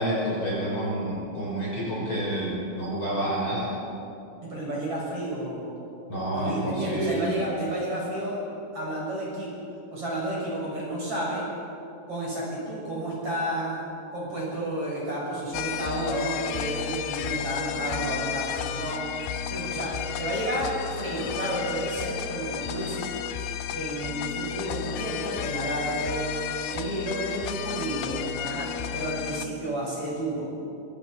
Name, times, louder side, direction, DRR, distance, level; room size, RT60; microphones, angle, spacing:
voice 1, 0.0-3.7 6.1-7.3, right 1 dB, 25° left, -6 dB, 6.1 m, -28 dB
voice 2, 4.4-5.8 6.3-8.4 8.7-9.5 9.9-11.4 12.1-19.0 19.5-23.1 23.7-26.4 26.7-28.7 28.9-30.5, right 1 dB, 30° right, -5 dB, 8.1 m, -31 dB
sound 1, 15.5-29.5, left 9 dB, 70° left, 2.5 m, -33 dB
26.0 x 26.0 x 5.8 m, 2.7 s
omnidirectional pair, 5.2 m